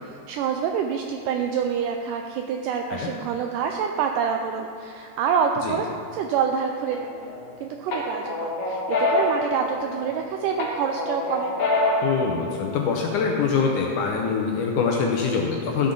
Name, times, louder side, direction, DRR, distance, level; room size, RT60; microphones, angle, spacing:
voice 1, 0.0-5.9 6.1-7.0 7.6-11.5, right 7 dB, 85° right, 4 dB, 1.9 m, -27 dB
sound 1, 6.9-7.5 7.9-10.2 10.6-12.2, left 2 dB, 55° left, 1.9 m, -25 dB
voice 2, 12.0-15.9, left 5 dB, 75° left, 0 dB, 2.0 m, -24 dB
13.5 x 7.8 x 3.8 m, 2.4 s
omnidirectional pair, 4.2 m